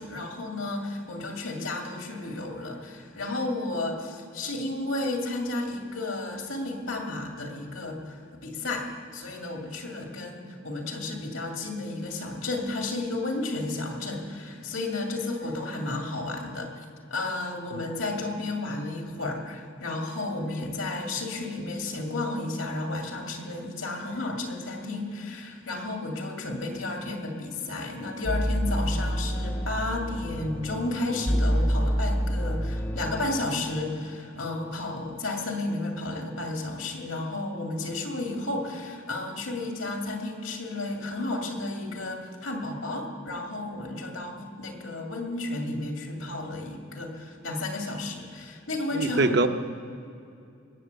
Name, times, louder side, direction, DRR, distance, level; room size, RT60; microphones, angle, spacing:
voice 1, 0.0-8.9 9.1-49.3, left 2 dB, 85° left, 2 dB, 2.4 m, -32 dB
sound 1, 28.3-33.5, equal, 10° left, 0.4 m, -27 dB
voice 2, 48.9-49.5, right 2 dB, 55° right, 7 dB, 0.7 m, -23 dB
20.0 x 7.3 x 8.1 m, 2.5 s
head